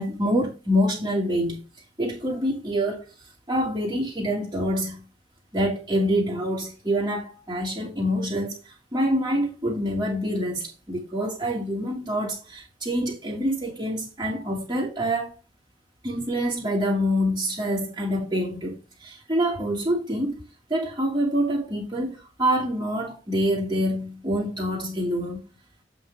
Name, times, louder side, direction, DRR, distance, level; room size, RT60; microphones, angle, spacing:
voice 1, 0.0-1.6 2.0-3.1 3.5-5.0 5.5-15.3 16.0-20.4 20.7-25.4, equal, 20° right, 1.8 m, -26 dB
7.8 x 3.9 x 4.7 m
head